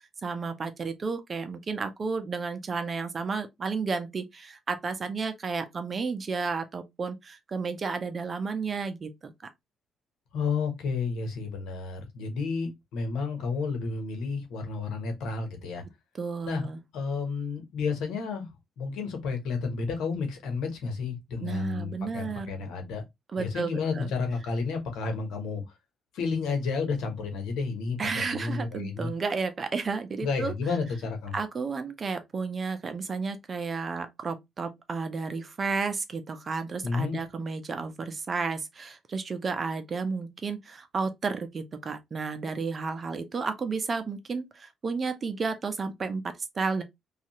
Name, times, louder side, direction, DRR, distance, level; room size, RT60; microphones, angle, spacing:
voice 1, 0.2-9.3 16.1-16.8 21.4-22.5 23.3-24.1 28.0-30.5 31.3-46.8, right 4 dB, 40° right, 0.6 m, -32 dB
voice 2, 10.3-15.8 16.4-16.7 16.9-18.5 18.8-23.0 23.4-25.6 26.1-29.1 30.2-31.3 36.8-37.2, left 4 dB, 85° left, 1.0 m, -31 dB
2.7 x 2.4 x 2.9 m
cardioid pair, 90°, 0 cm